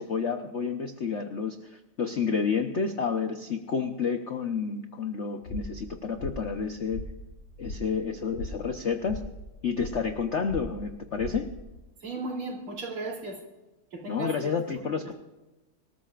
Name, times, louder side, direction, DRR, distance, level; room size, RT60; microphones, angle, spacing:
voice 1, 0.0-7.0 7.6-9.2 9.6-11.5 14.1-15.1, left 5 dB, 50° left, 6 dB, 0.8 m, -30 dB
sound 1, 5.4-11.8, left 1 dB, 85° left, 4.3 m, -41 dB
voice 2, 12.0-13.4 13.9-14.5 15.0-15.1, right 2 dB, 80° right, -1 dB, 4.1 m, -35 dB
26.0 x 13.5 x 2.5 m, 1.1 s
omnidirectional pair, 2.3 m